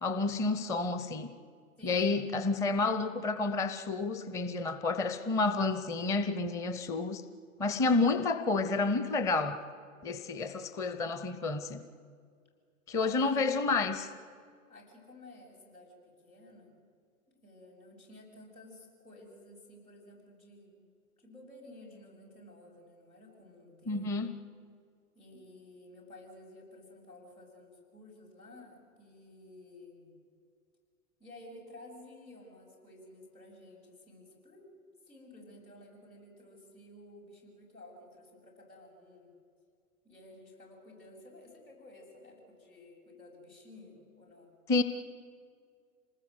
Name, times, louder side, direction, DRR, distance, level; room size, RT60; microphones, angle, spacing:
voice 1, 0.0-1.3 1.8-7.2 7.6-9.6 10.0-11.8 12.9-14.1 23.9-24.3 44.7-44.8, left 3 dB, 10° left, 10 dB, 0.5 m, -30 dB
voice 2, 1.8-2.3 13.0-13.4 14.7-16.7 17.3-20.9 21.2-24.3 25.1-30.1 31.2-34.7 35.1-39.3 40.0-44.5, left 1 dB, 90° left, -2 dB, 7.7 m, -53 dB
26.5 x 19.5 x 8.0 m, 2.1 s
figure-of-eight pair, 105°, 42 cm